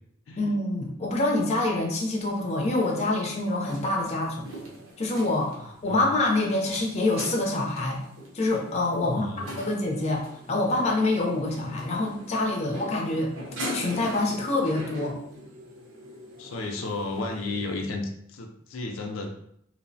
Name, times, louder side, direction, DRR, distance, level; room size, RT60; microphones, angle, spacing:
voice 1, 0.4-4.5 5.0-8.0 8.3-9.3 9.5-13.3 13.7-15.2, left 2 dB, 35° left, -1 dB, 0.5 m, -26 dB
sound 1, 2.3-17.9, equal, 90° right, 0.8 m, -42 dB
voice 2, 9.0-9.5 16.4-19.3, left 2 dB, 85° left, 2 dB, 0.4 m, -33 dB
2.8 x 2.0 x 2.6 m, 0.71 s
head